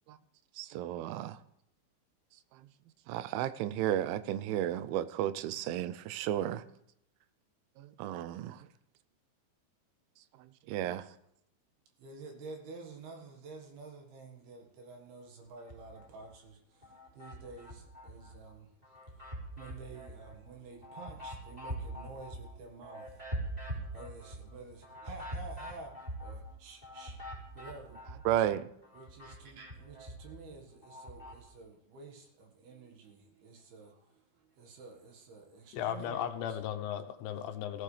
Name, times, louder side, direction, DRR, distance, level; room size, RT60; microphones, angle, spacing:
voice 1, 0.6-1.4 3.1-6.6 7.8-8.6 10.7-11.1 28.3-28.7, right 12 dB, 85° right, 3.0 m, -33 dB
voice 2, 12.0-18.7 19.1-28.0 28.9-36.2 36.5-36.6, right 3 dB, 65° right, 3.3 m, -50 dB
sound 1, 15.6-16.4 16.8-18.4 18.8-28.5 28.8-31.4, right 1 dB, 10° right, 3.2 m, -44 dB
voice 3, 35.7-37.8, left 9 dB, 80° left, 3.1 m, -36 dB
17.0 x 15.5 x 3.3 m
omnidirectional pair, 5.4 m